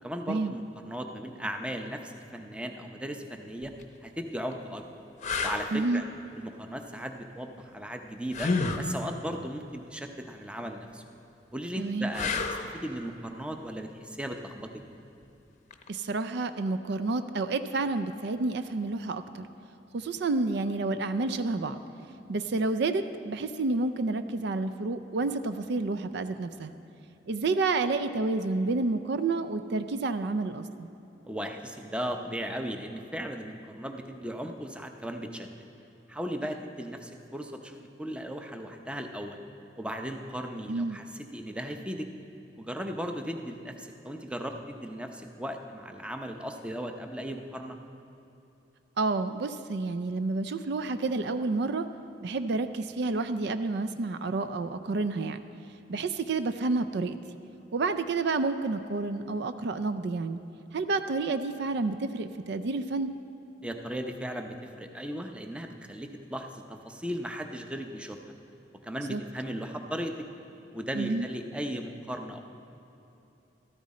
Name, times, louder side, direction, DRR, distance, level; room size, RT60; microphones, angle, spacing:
voice 1, 0.0-3.7 4.0-5.0 5.4-6.0 6.4-8.5 8.8-11.0 11.5-12.4 12.7-14.7 31.2-35.5 36.1-39.4 39.8-41.0 41.3-42.1 42.6-47.8 63.6-68.2 68.8-70.3 70.7-72.4, equal, 5° right, 5 dB, 0.6 m, -37 dB
sound 1, 3.6-3.8 4.5-4.6 5.2-5.7 8.3-8.9 12.1-12.7 15.7-15.9, left 4 dB, 40° left, 0.7 m, -29 dB
voice 2, 5.7-6.0 11.8-12.1 15.9-19.5 19.9-21.8 22.3-26.7 27.3-30.9 40.7-41.0 49.0-51.9 52.2-55.4 55.9-57.2 57.7-60.4 60.7-63.1 69.1-69.2 70.9-71.3, right 3 dB, 65° right, 11 dB, 0.4 m, -29 dB
13.5 x 13.5 x 4.2 m, 2.8 s
head